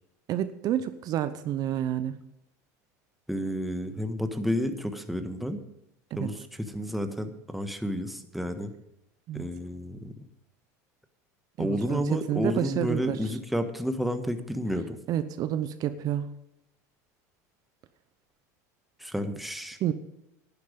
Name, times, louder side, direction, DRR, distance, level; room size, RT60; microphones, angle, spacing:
voice 1, 0.3-2.2 6.1-6.3 9.3-9.4 11.6-13.3 15.1-16.3 19.8-19.9, right 11 dB, 45° right, 12 dB, 0.8 m, -29 dB
voice 2, 3.3-5.6 6.1-8.7 9.3-10.1 11.6-15.0 19.0-19.8, equal, ahead, 7 dB, 1.4 m, -31 dB
11.5 x 10.5 x 5.1 m, 0.86 s
supercardioid pair, 105°, 9 cm